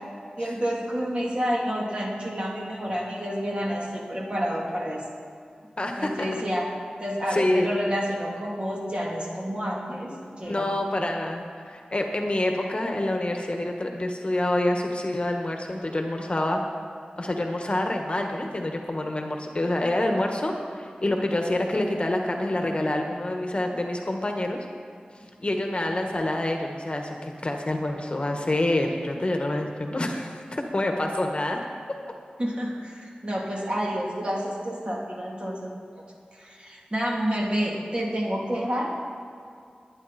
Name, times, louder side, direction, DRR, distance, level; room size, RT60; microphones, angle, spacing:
voice 1, 0.4-5.0 6.0-6.7 7.0-10.7 32.4-35.7 36.3-38.9, equal, 35° right, -3 dB, 2.9 m, -29 dB
voice 2, 5.8-6.3 7.3-7.7 10.4-16.6 17.2-24.6 25.4-31.6, left 1 dB, 40° left, 3 dB, 1.4 m, -27 dB
20.5 x 9.7 x 4.3 m, 2.4 s
wide cardioid pair, 60°, 3 cm